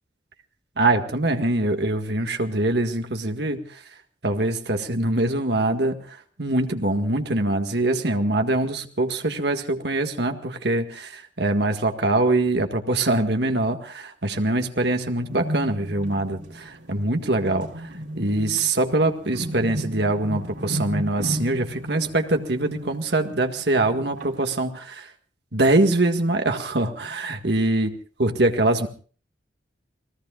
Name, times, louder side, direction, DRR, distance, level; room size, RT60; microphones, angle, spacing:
voice 1, 0.8-3.8 4.2-17.9 18.2-25.1 25.5-27.9 28.2-28.9, right 2 dB, 60° right, 5 dB, 1.8 m, -23 dB
sound 1, 15.2-24.4, equal, 85° right, 3.5 m, -34 dB
30.0 x 20.0 x 2.4 m, 0.41 s
head